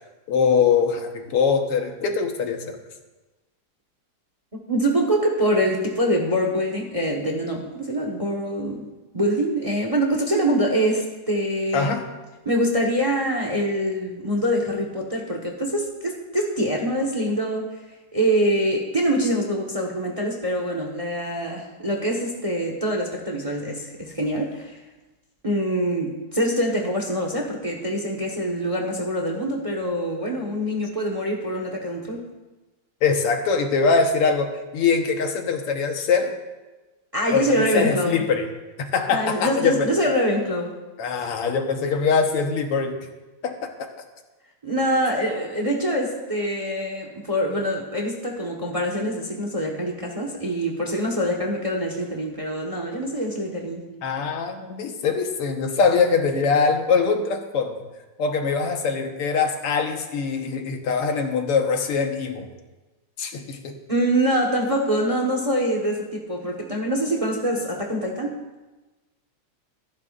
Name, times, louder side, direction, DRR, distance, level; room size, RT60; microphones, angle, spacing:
voice 1, 0.3-2.8 11.7-12.0 33.0-36.3 37.3-38.5 38.8-39.9 41.0-43.0 43.4-43.9 54.0-57.8 58.2-62.5 63.2-63.7, left 5 dB, 90° left, 4 dB, 2.2 m, -23 dB
voice 2, 4.7-8.9 9.1-11.9 12.4-17.7 18.1-24.8 25.4-32.3 37.1-38.2 39.1-40.7 44.6-53.9 63.9-68.3, equal, 20° right, 1 dB, 1.1 m, -24 dB
26.5 x 9.4 x 2.5 m, 1.2 s
omnidirectional pair, 2.4 m